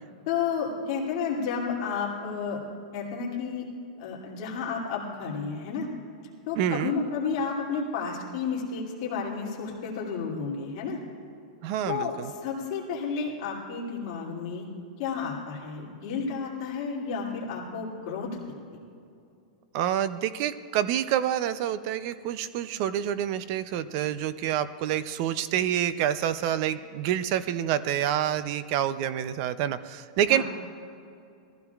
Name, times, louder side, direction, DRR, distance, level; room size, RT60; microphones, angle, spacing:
voice 1, 0.3-2.6 2.9-3.7 4.0-5.9 6.5-11.0 11.9-14.7 15.0-18.4 30.3-30.4, left 5 dB, 40° left, -4 dB, 2.6 m, -31 dB
voice 2, 6.6-6.9 11.6-12.3 19.7-30.4, right 10 dB, 35° right, 14 dB, 0.5 m, -27 dB
21.5 x 15.0 x 2.4 m, 2.5 s
supercardioid pair, 170°, 4 cm